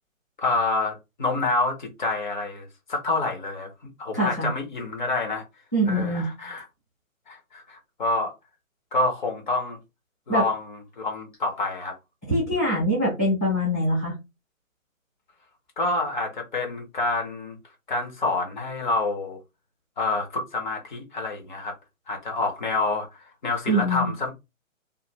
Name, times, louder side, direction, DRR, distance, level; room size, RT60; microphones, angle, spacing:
voice 1, 0.4-3.7 4.0-5.4 5.9-6.6 7.3-8.3 8.9-9.8 10.3-11.9 15.8-17.6 17.9-19.4 20.0-21.7 22.1-24.3, left 2 dB, 35° left, 0.8 m, -27 dB
voice 2, 4.1-4.5 5.7-6.3 10.3-10.4 12.3-14.1 23.7-24.1, equal, 15° right, 0.4 m, -23 dB
2.5 x 2.2 x 3.0 m
figure-of-eight pair, 140°, 40 cm